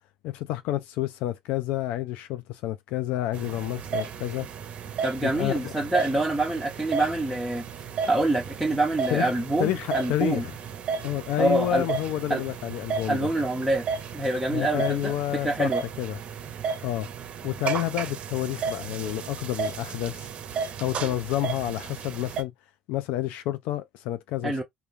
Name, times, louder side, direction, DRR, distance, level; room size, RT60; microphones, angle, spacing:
voice 1, 0.2-4.5 5.2-5.7 9.1-9.3 9.6-10.5 11.0-13.3 14.5-15.7 16.0-16.2 16.8-17.1 17.4-20.3 20.8-22.5 22.9-24.6, left 14 dB, 75° left, 0.3 m, -29 dB
sound 1, 3.3-22.4, right 6 dB, 50° right, 0.6 m, -34 dB
voice 2, 5.0-7.6 8.1-10.4 11.4-11.8 12.3-12.4 13.1-13.9 14.1-15.1 15.4-15.8 24.4-24.6, right 2 dB, ahead, 0.7 m, -25 dB
2.3 x 2.2 x 3.0 m
supercardioid pair, 85°, 3 cm